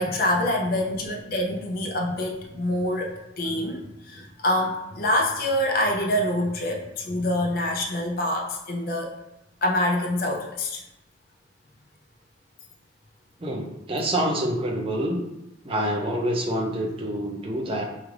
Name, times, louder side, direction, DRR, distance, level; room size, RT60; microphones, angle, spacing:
voice 1, 0.0-9.2 9.6-10.8, left 1 dB, 50° left, 1 dB, 0.4 m, -26 dB
voice 2, 13.4-15.2 15.6-17.8, right 1 dB, 30° right, 0 dB, 0.5 m, -27 dB
4.8 x 2.3 x 3.2 m, 0.89 s
head